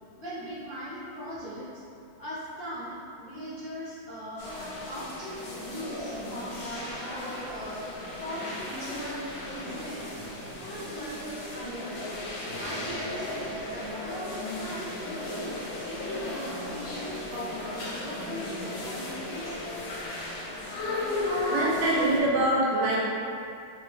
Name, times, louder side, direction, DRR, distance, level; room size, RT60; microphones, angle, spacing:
voice 1, 0.2-1.7 2.2-4.5 4.8-7.9 8.2-10.3 10.6-12.2 12.5-19.6, equal, 40° left, -15 dB, 0.5 m, -40 dB
sound 1, 4.4-22.2, left 1 dB, 70° left, 1.0 m, -35 dB
voice 2, 21.5-23.0, right 1 dB, 75° right, -5 dB, 1.2 m, -24 dB
3.3 x 2.0 x 3.1 m, 2.6 s
omnidirectional pair, 2.2 m